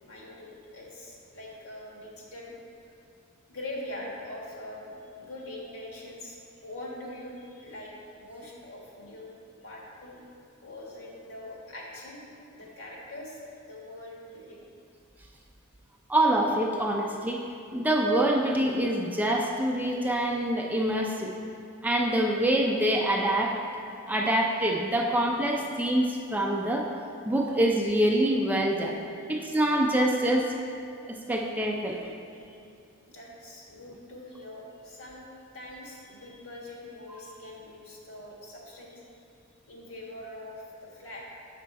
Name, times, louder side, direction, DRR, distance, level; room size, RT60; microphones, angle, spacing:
voice 1, 0.0-2.5 3.5-6.4 6.6-7.9 8.2-9.3 9.6-10.2 10.6-12.2 12.5-13.4 13.7-14.7 29.2-29.3 32.3-32.7 33.1-35.3 35.5-39.1 39.7-41.2, left 1 dB, 75° left, -3 dB, 1.6 m, -43 dB
voice 2, 16.1-21.3 21.8-23.6 24.1-26.9 27.2-28.9 29.3-30.5 31.1-32.0 37.1-37.2, right 1 dB, 10° right, 0 dB, 0.4 m, -25 dB
7.2 x 5.1 x 4.6 m, 2.5 s
head